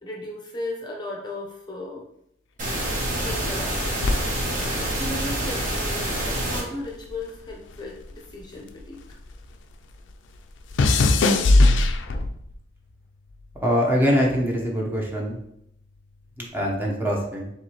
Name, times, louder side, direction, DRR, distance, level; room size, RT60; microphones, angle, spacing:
voice 1, 0.0-2.0 3.2-9.2, left 2 dB, 25° left, -2 dB, 0.6 m, -36 dB
sound 1, 2.6-6.6, right 1 dB, 45° right, 1.4 m, -27 dB
sound 2, 4.0-6.5 6.8-9.5 9.7-12.5 13.3-13.6, left 2 dB, 90° left, 0.4 m, -22 dB
voice 2, 13.6-15.4 16.4-17.5, equal, 10° right, -2 dB, 0.8 m, -23 dB
4.6 x 3.5 x 2.9 m, 0.75 s
head